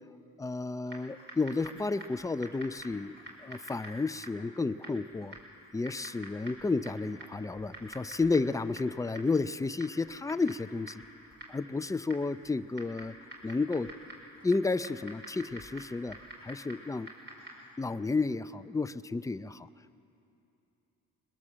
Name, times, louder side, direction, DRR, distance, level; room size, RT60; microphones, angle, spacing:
voice 1, 0.4-3.1 3.4-5.3 5.7-11.0 11.5-13.1 13.4-13.9 14.4-16.2 16.4-17.1 17.8-19.7, left 3 dB, 10° left, 12 dB, 0.5 m, -31 dB
Typing, 0.9-17.7, right 1 dB, 35° right, 5.2 m, -49 dB
21.5 x 21.0 x 7.5 m, 2.8 s
cardioid pair, 90°, 30 cm